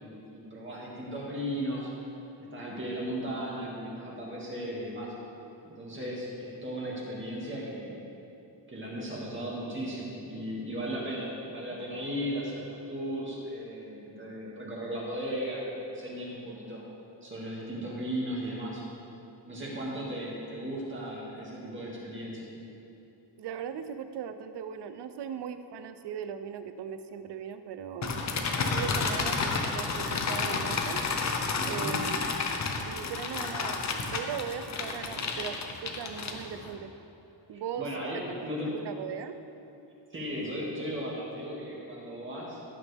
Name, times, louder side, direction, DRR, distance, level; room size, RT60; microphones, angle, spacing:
voice 1, 0.0-1.9 2.5-5.1 5.6-8.0 8.7-16.8 17.2-18.8 19.5-22.5 31.6-32.0 37.8-38.7 40.1-42.6, equal, 25° right, -5 dB, 2.2 m, -36 dB
voice 2, 23.4-28.1 28.6-31.0 31.7-32.2 32.8-36.9 37.5-37.8 38.1-38.2 38.6-39.4, right 8 dB, 65° right, 9 dB, 0.7 m, -38 dB
sound 1, 28.0-36.7, left 4 dB, 40° left, 0.9 m, -31 dB
16.0 x 9.1 x 3.5 m, 2.9 s
wide cardioid pair, 180°, 44 cm